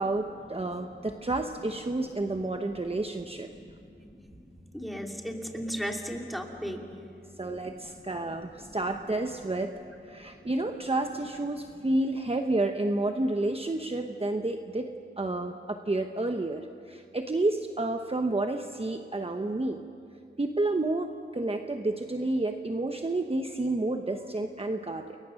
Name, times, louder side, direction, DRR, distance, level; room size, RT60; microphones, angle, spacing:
voice 1, 0.0-3.5 7.4-9.7 10.0-19.9 20.4-25.2, right 2 dB, 30° right, 5 dB, 1.0 m, -30 dB
voice 2, 2.6-2.9 3.3-6.8 7.7-8.7 10.3-10.4, equal, ahead, 1 dB, 2.9 m, -38 dB
29.5 x 21.5 x 6.4 m, 2.5 s
wide cardioid pair, 75°, 20 cm